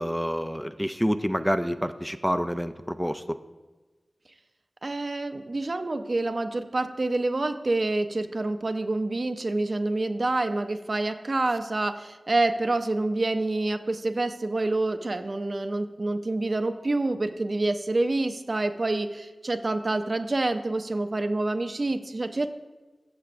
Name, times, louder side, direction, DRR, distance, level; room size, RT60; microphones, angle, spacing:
voice 1, 0.0-3.4, equal, ahead, 10 dB, 0.4 m, -28 dB
voice 2, 4.8-22.5, right 2 dB, 55° right, 7 dB, 0.5 m, -27 dB
14.5 x 5.7 x 2.5 m, 1.2 s
cardioid pair, 40°, 0 cm